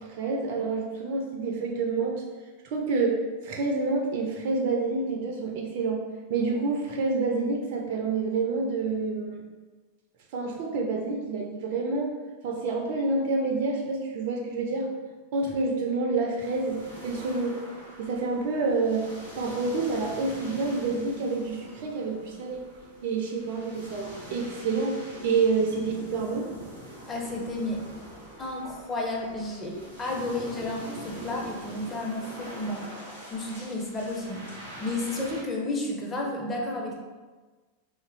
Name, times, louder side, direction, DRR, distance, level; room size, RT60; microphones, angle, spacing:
voice 1, 0.0-2.2 2.6-9.4 10.3-12.1 12.4-14.9 15.3-17.6 18.0-19.1 19.4-22.6 23.0-26.5, right 3 dB, 50° right, 1 dB, 0.4 m, -28 dB
sound 1, 16.4-35.4, right 1 dB, 90° left, 0.8 m, -44 dB
voice 2, 27.1-27.8 28.4-32.8 33.3-37.0, left 2 dB, 20° left, -1 dB, 0.6 m, -32 dB
2.9 x 2.4 x 2.9 m, 1.3 s
figure-of-eight pair, 90°, 0 cm